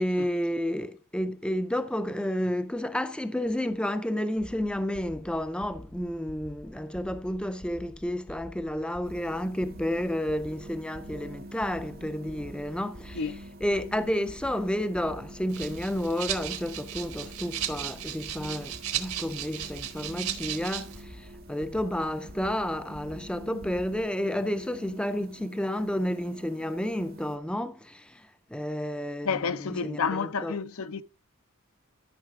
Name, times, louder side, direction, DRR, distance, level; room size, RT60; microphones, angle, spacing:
voice 1, 0.0-13.2 13.6-30.5, equal, 5° left, 0.4 m, -31 dB
sound 1, 4.4-24.1, left 1 dB, 30° left, 0.7 m, -48 dB
sound 2, 9.0-27.4, right 1 dB, 45° right, 0.7 m, -47 dB
Rattle (instrument), 15.5-21.0, right 11 dB, 80° right, 1.4 m, -36 dB
voice 2, 29.3-31.0, left 5 dB, 75° left, 0.7 m, -30 dB
12.5 x 5.7 x 3.6 m
head